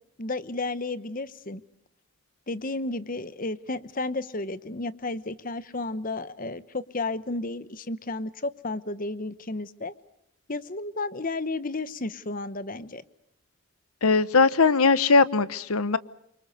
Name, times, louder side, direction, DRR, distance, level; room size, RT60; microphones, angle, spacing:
voice 1, 0.2-1.6 2.5-9.9 10.5-13.0, left 2 dB, 40° left, 1.0 m, -32 dB
voice 2, 14.0-16.0, left 4 dB, 85° left, 1.0 m, -20 dB
28.5 x 25.0 x 6.9 m
head